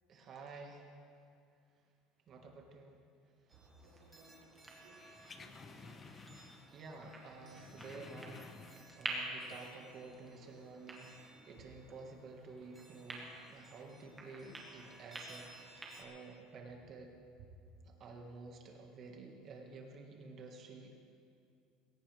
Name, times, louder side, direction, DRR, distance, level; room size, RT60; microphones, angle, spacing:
voice 1, 0.1-1.0 2.3-3.0 6.7-8.5 9.0-17.1 17.8-21.0, right 3 dB, 30° right, 1 dB, 1.8 m, -51 dB
sound 1, 3.5-16.0, right 2 dB, 10° right, 1.8 m, -50 dB
voice 2, 3.8-5.1 5.3-6.4, right 1 dB, 65° right, -12 dB, 4.6 m, -63 dB
sound 2, 4.9-6.8 7.1-9.1 9.4-9.6, left 4 dB, 20° left, 0.6 m, -54 dB
21.0 x 17.0 x 3.5 m, 2.4 s
cardioid pair, 170°, 0 cm